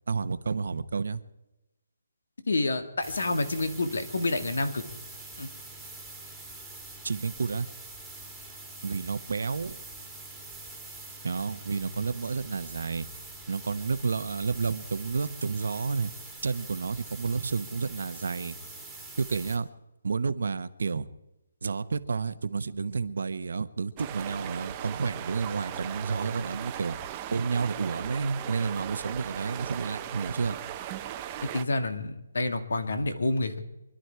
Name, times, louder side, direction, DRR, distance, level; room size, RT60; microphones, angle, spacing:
voice 1, 0.1-1.2 7.0-7.7 8.8-9.8 11.2-13.1 13.5-16.1 16.4-18.6 19.2-19.7 20.0-21.1 21.6-27.0 27.3-30.6, right 4 dB, 70° right, 13 dB, 1.0 m, -30 dB
voice 2, 2.5-4.8 5.4-5.5 31.5-33.6, left 2 dB, 80° left, 8 dB, 2.2 m, -28 dB
sound 1, 3.0-19.6, right 2 dB, ahead, 2.1 m, -44 dB
sound 2, 24.0-31.6, right 11 dB, 20° right, 0.8 m, -38 dB
24.5 x 11.5 x 4.7 m, 0.97 s
hypercardioid pair, 165°, 0 cm